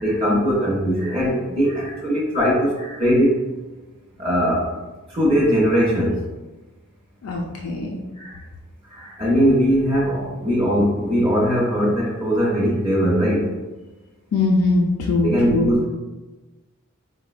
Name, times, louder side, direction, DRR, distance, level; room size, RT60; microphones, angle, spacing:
voice 1, 0.0-3.4 4.2-4.7 5.1-6.2 8.2-8.4 8.9-13.5 15.2-15.9, equal, 25° right, -5 dB, 0.5 m, -20 dB
voice 2, 7.2-8.0 14.3-15.8, left 2 dB, 75° left, -1 dB, 0.4 m, -21 dB
3.6 x 2.0 x 2.4 m, 1.2 s
head